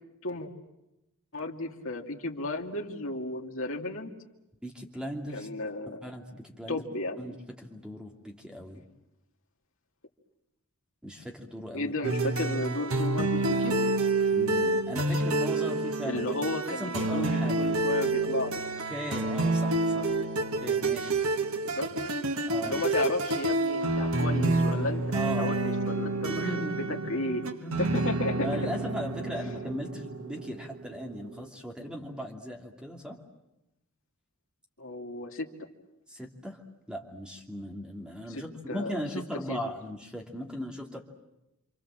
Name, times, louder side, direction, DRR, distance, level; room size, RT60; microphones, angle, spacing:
voice 1, 1.3-4.1 5.3-6.0 6.7-7.2 11.7-13.8 16.0-18.6 21.8-21.9 22.6-25.0 25.4-26.6 27.1-27.4 27.8-28.5 34.8-35.5 38.3-39.0 39.5-39.6, left 2 dB, 60° left, 2 dB, 2.7 m, -33 dB
voice 2, 4.6-5.5 6.0-6.8 7.2-8.9 11.0-11.9 14.3-16.2 16.7-17.6 18.9-20.1 20.6-21.1 22.5-22.8 25.1-25.8 26.3-27.8 28.4-33.2 36.1-36.6 36.9-41.0, equal, 5° right, 1 dB, 2.8 m, -38 dB
sound 1, 12.0-31.4, right 2 dB, 65° right, 1.4 m, -28 dB
28.5 x 26.0 x 7.7 m, 0.92 s
head